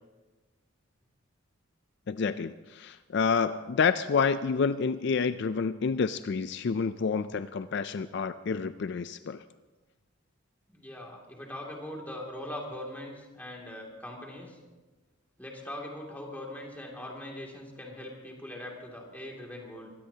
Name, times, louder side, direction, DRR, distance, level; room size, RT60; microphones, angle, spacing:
voice 1, 2.1-9.4, left 5 dB, 55° left, 12 dB, 0.4 m, -28 dB
voice 2, 10.7-14.6 15.4-19.9, left 1 dB, 10° left, -1 dB, 2.5 m, -41 dB
23.0 x 16.5 x 2.8 m, 1.2 s
head